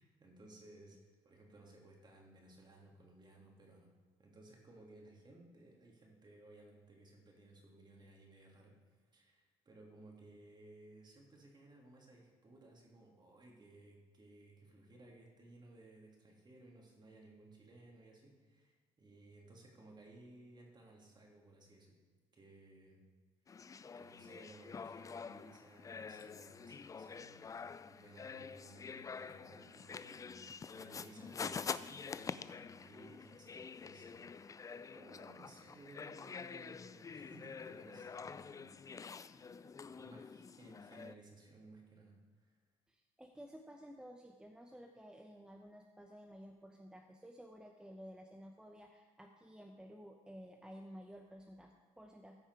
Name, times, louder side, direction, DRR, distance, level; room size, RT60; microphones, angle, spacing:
voice 1, 0.0-3.9 4.2-8.8 9.1-22.0 22.3-23.0 24.0-42.6, right 2 dB, 35° right, -1 dB, 2.7 m, -59 dB
sound 1, 23.5-41.1, left 5 dB, 25° left, 0.3 m, -47 dB
voice 2, 42.9-52.4, equal, 5° right, 2 dB, 0.9 m, -54 dB
14.5 x 5.6 x 4.7 m, 1.5 s
cardioid pair, 80°, 13 cm